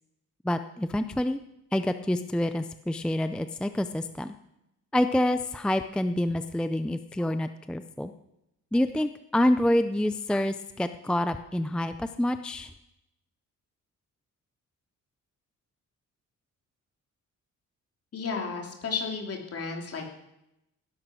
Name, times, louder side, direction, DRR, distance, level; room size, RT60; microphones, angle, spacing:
voice 1, 0.4-1.4 1.7-4.3 4.9-8.1 8.7-12.7, left 1 dB, 5° left, 10 dB, 0.4 m, -27 dB
voice 2, 18.1-20.1, left 5 dB, 50° left, 1 dB, 3.1 m, -33 dB
17.5 x 11.0 x 6.2 m, 0.86 s
wide cardioid pair, 155°, 31 cm